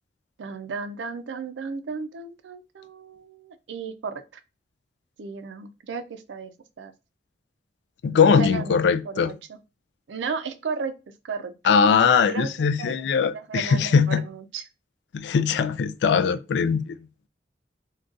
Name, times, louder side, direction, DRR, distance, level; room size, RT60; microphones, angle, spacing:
voice 1, 0.4-4.2 5.2-6.5 6.8-6.9 8.4-9.3 10.1-10.9 11.2-11.5 12.3-12.5 12.8-13.1 13.3-14.6, right 5 dB, 80° right, 0.4 m, -34 dB
voice 2, 8.0-9.3 11.6-14.2 15.1-17.0, left 6 dB, 70° left, 0.3 m, -21 dB
3.7 x 2.3 x 2.5 m
head